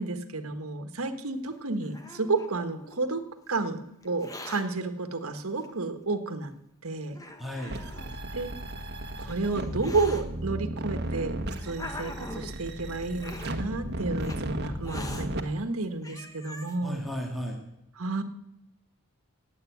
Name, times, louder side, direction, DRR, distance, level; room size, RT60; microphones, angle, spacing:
voice 1, 0.0-6.5 6.8-7.2 7.6-7.7 8.3-8.5 9.2-11.4 11.6-17.0 18.0-18.2, right 3 dB, 80° right, 9 dB, 1.5 m, -31 dB
Hiss, 1.4-3.1 4.0-4.6 5.6-5.7 6.5-6.6 7.1-8.2 9.0-10.2 11.1-12.6 13.2-13.5 14.2-14.4 14.8-15.3 15.7-15.8 16.0-16.8, left 1 dB, 15° left, 1.3 m, -43 dB
voice 2, 7.4-7.7 16.8-17.6, equal, ahead, -1 dB, 2.1 m, -36 dB
sound 1, 7.7-15.4, right 1 dB, 50° right, 1.4 m, -35 dB
16.5 x 8.4 x 9.4 m, 0.86 s
head